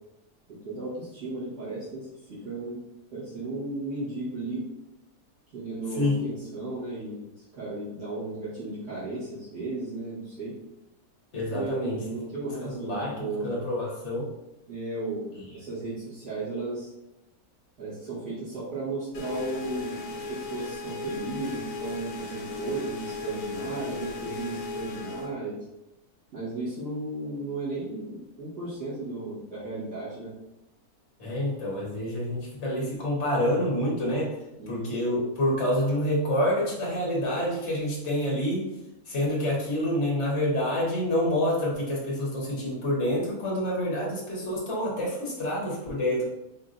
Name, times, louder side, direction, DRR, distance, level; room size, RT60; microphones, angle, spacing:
voice 1, 0.5-2.8 3.1-4.7 5.5-7.3 7.5-10.6 11.5-13.5 14.7-16.9 17.8-25.6 26.3-30.3 34.6-34.9, right 2 dB, 80° right, -12 dB, 1.9 m, -35 dB
voice 2, 11.3-12.0 12.6-14.3 15.4-15.5 31.2-34.4 34.7-38.7 39.0-46.2, left 1 dB, 50° left, -4 dB, 1.4 m, -27 dB
sound 1, 19.1-25.3, left 4 dB, 70° left, 1.1 m, -36 dB
4.9 x 2.7 x 2.5 m, 0.92 s
omnidirectional pair, 1.6 m